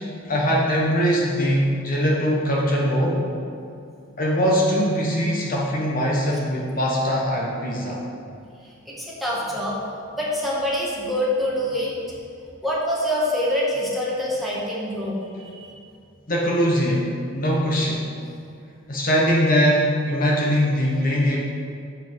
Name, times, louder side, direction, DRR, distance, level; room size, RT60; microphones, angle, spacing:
voice 1, 0.2-3.2 4.2-8.0 16.3-18.1 18.9-21.4, equal, 45° left, -3 dB, 1.2 m, -21 dB
voice 2, 8.9-9.8 10.1-11.9 12.6-15.8, left 1 dB, ahead, -7 dB, 1.8 m, -25 dB
7.3 x 5.9 x 7.2 m, 2.4 s
head